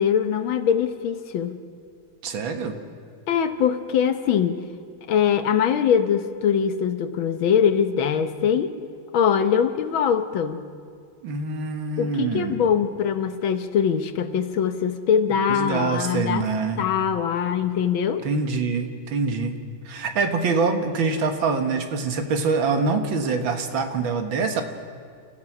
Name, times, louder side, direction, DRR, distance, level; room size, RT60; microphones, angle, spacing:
voice 1, 0.0-1.6 3.3-4.6 5.1-8.8 9.1-10.6 12.0-16.4 16.8-18.3, left 8 dB, 90° left, 9 dB, 1.9 m, -22 dB
voice 2, 2.2-2.8 11.2-12.6 15.5-16.8 18.2-19.5 19.9-24.6, right 4 dB, 80° right, 6 dB, 2.2 m, -25 dB
29.5 x 14.5 x 6.1 m, 2.2 s
omnidirectional pair, 2.1 m